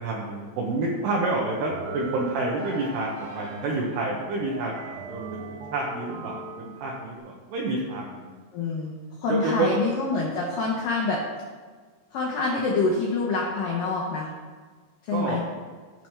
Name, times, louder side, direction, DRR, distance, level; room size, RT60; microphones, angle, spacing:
voice 1, 0.0-5.2 5.5-8.4 9.3-9.7 15.1-15.4, right 2 dB, 75° right, -3 dB, 2.7 m, -29 dB
sound 1, 1.5-7.2, right 3 dB, 90° right, 2.0 m, -39 dB
voice 2, 8.5-11.2 12.1-14.3 15.1-15.4, left 3 dB, 80° left, -3 dB, 2.0 m, -26 dB
17.0 x 5.9 x 3.3 m, 1.5 s
omnidirectional pair, 5.6 m